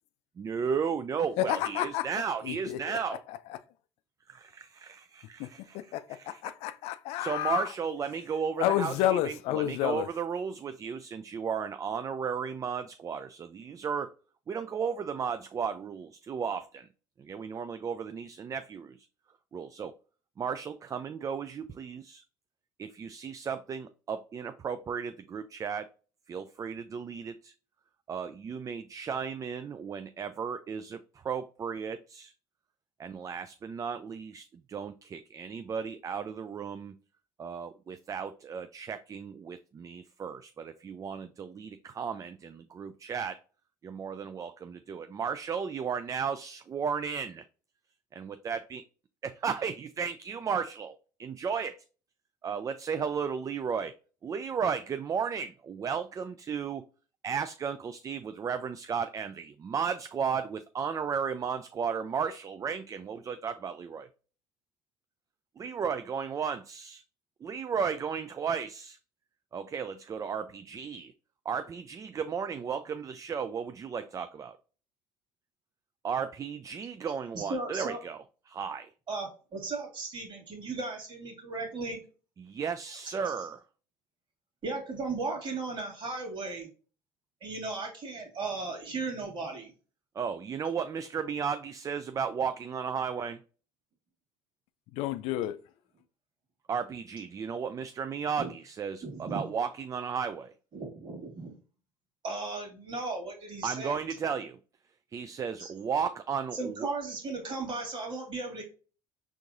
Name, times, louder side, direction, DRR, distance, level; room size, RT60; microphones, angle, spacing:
voice 1, 0.4-3.2 4.3-6.4 7.2-14.1 14.5-16.9 17.2-19.1 19.5-19.9 20.4-22.2 22.8-25.9 26.3-27.5 28.1-32.3 33.0-37.0 37.4-43.4 43.8-47.4 48.1-48.8 49.2-51.8 52.4-53.9 54.2-56.8 57.2-64.1 65.6-67.0 67.4-69.0 69.5-71.1 71.5-74.6 76.0-78.2 78.5-78.9 82.4-83.6 90.2-93.4 96.7-100.5 103.6-104.6 105.1-106.9, right 6 dB, 30° right, 0.3 m, -34 dB
voice 2, 1.4-2.1 2.4-3.6 5.4-5.5 5.7-7.7 8.6-10.1 94.9-95.6, left 13 dB, 70° left, 0.4 m, -30 dB
voice 3, 77.3-78.0 79.1-82.0 84.6-86.7 87.4-89.7 98.4-98.5 99.0-99.4 100.7-101.6 102.2-104.0 105.6-105.7 106.5-108.6, right 3 dB, 45° right, 2.3 m, -36 dB
4.6 x 3.5 x 2.5 m
hypercardioid pair, 75°, 11 cm